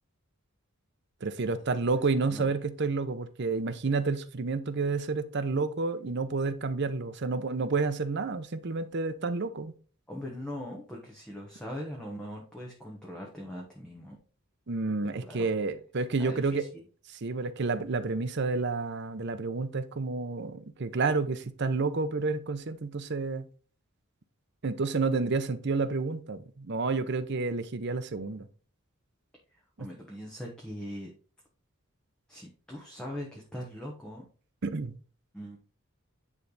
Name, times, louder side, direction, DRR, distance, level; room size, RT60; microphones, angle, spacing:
voice 1, 1.2-9.8 14.7-16.7 17.1-23.5 24.6-28.5 29.8-29.9 34.6-35.0, right 4 dB, 55° right, 0.7 m, -30 dB
voice 2, 10.1-14.1 15.2-15.5 16.2-16.4 29.8-31.1 32.3-34.2 35.3-35.6, equal, 5° left, 1.1 m, -40 dB
9.7 x 3.4 x 3.9 m
head